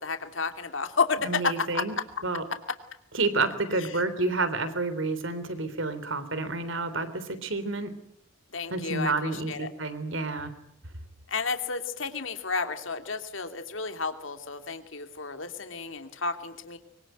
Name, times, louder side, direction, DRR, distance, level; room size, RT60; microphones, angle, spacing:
voice 1, 0.0-1.8 3.8-4.0 8.5-9.7 11.3-16.8, left 4 dB, 70° left, 7 dB, 2.8 m, -31 dB
voice 2, 1.2-1.9 2.2-2.4 3.1-7.9 8.7-10.5, right 3 dB, 70° right, 12 dB, 3.5 m, -29 dB
25.0 x 24.5 x 9.2 m, 0.72 s
head